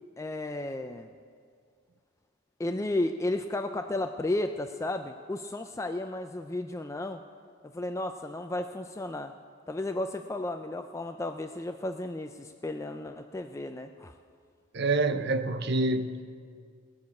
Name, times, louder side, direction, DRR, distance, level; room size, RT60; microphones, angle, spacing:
voice 1, 0.2-1.1 2.6-7.2 7.7-9.3 9.7-14.1, left 2 dB, 15° left, 7 dB, 0.3 m, -33 dB
voice 2, 14.7-16.2, right 2 dB, 55° right, 9 dB, 0.6 m, -27 dB
18.5 x 6.4 x 8.4 m, 2.1 s
head